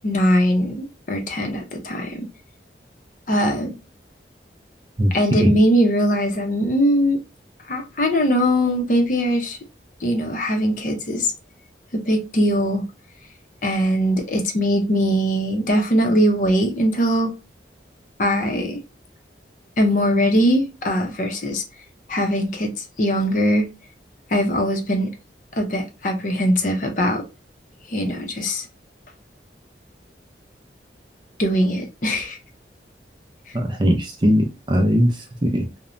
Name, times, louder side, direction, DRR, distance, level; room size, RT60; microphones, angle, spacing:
voice 1, 0.0-2.3 3.3-3.7 5.1-7.2 7.7-9.6 10.0-11.3 12.1-12.8 13.6-17.3 18.2-18.8 19.8-21.6 22.1-23.7 24.3-25.1 25.6-27.2 27.9-28.7 31.4-32.4, equal, 45° left, 0.6 m, -21 dB
voice 2, 33.5-35.1 35.4-35.6, equal, 25° right, 0.4 m, -19 dB
3.0 x 2.1 x 2.4 m
head